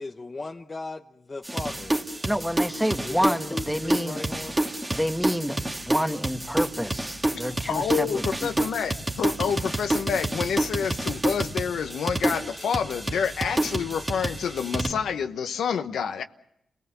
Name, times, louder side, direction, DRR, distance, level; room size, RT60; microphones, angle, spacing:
voice 1, 0.0-2.0 3.0-4.6, left 3 dB, 30° left, 0.9 m, -36 dB
sound 1, 1.4-14.9, right 1 dB, 20° right, 1.9 m, -29 dB
voice 2, 2.2-4.2 4.9-5.6 5.9-8.7, equal, ahead, 1.4 m, -28 dB
voice 3, 7.7-16.2, left 7 dB, 85° left, 1.0 m, -28 dB
29.5 x 18.5 x 7.1 m
cardioid pair, 85°, 0 cm